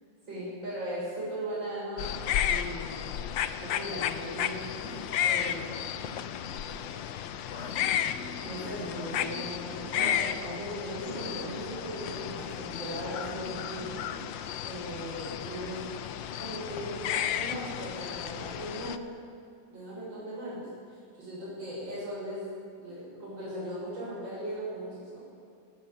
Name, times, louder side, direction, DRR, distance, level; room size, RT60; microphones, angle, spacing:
voice 1, 0.3-2.2 2.4-3.0 3.6-4.6 5.2-5.7 8.4-14.0 14.6-15.8 16.4-19.1 19.7-22.4 22.8-25.2, equal, 80° right, -7 dB, 7.6 m, -38 dB
sound 1, 2.0-19.0, left 10 dB, 90° left, 1.6 m, -33 dB
sound 2, 3.7-17.2, left 2 dB, 40° left, 1.6 m, -47 dB
19.0 x 18.5 x 8.9 m, 2.5 s
omnidirectional pair, 2.0 m